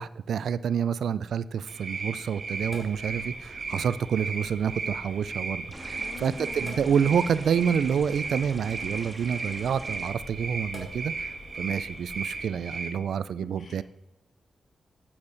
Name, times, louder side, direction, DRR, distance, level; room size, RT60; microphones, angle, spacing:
voice 1, 0.0-13.8, right 7 dB, 90° right, 16 dB, 0.3 m, -28 dB
sound 1, 1.7-12.9, right 4 dB, 50° right, 1.4 m, -36 dB
Sink (filling or washing), 2.5-12.5, left 2 dB, 35° left, 2.5 m, -48 dB
sound 2, 5.7-10.1, right 1 dB, 10° right, 1.7 m, -44 dB
voice 2, 6.0-6.8 7.1-7.2 13.4-13.8, left 4 dB, 65° left, 6 dB, 1.3 m, -43 dB
8.6 x 8.1 x 4.0 m, 0.95 s
wide cardioid pair, 100°, 0 cm